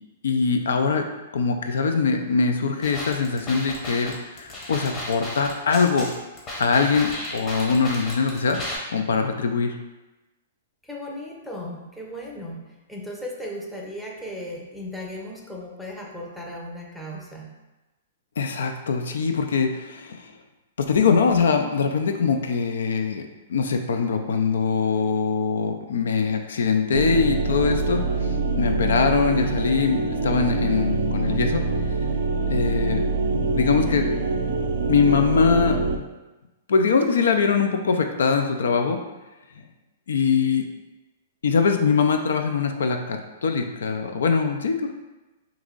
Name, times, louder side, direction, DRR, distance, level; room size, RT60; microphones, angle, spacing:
voice 1, 0.2-1.1 1.3-6.1 6.6-8.6 8.9-9.8 18.4-20.3 20.8-31.7 32.5-33.1 33.5-34.1 34.9-35.8 36.7-39.0 39.6-39.7 40.1-40.7 41.4-44.9, left 5 dB, 80° left, 5 dB, 0.4 m, -22 dB
sound 1, 2.8-8.8, left 1 dB, 25° left, 0.8 m, -34 dB
voice 2, 10.8-12.6 12.9-17.5, left 1 dB, ahead, -3 dB, 0.5 m, -36 dB
sound 2, 26.9-36.0, right 3 dB, 70° right, 0.4 m, -25 dB
2.9 x 2.5 x 3.7 m, 1.1 s
hypercardioid pair, 145°, 0 cm